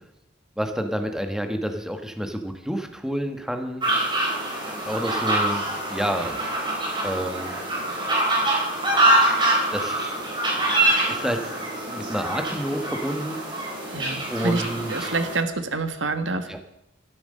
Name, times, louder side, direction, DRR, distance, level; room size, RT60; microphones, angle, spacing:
voice 1, 0.6-3.9 4.8-6.4 7.0-7.5 9.7-10.1 11.0-11.5 11.9-13.7 14.3-15.1 16.5-16.6, equal, 5° right, 6 dB, 1.2 m, -29 dB
sound 1, 3.8-15.4, right 1 dB, 25° right, 4.2 m, -25 dB
voice 2, 13.9-14.6 14.9-16.6, right 3 dB, 75° right, 9 dB, 1.5 m, -27 dB
13.0 x 12.5 x 6.5 m, 0.83 s
head